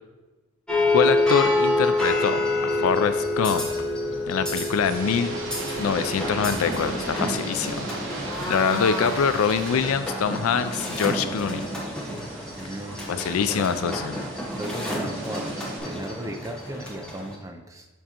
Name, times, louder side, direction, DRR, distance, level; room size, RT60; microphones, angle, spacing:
sound 1, 0.7-17.3, left 1 dB, 5° left, 1.1 m, -28 dB
voice 1, 0.9-3.9 4.3-5.3 5.8-7.9 8.5-11.6 13.1-14.2, left 6 dB, 80° left, 11 dB, 0.4 m, -24 dB
sound 2, 4.7-15.8, right 2 dB, 60° right, 1.3 m, -38 dB
voice 2, 12.6-14.0 14.6-15.6 15.8-17.9, right 1 dB, 15° right, 3 dB, 0.5 m, -36 dB
7.3 x 6.5 x 2.9 m, 1.2 s
head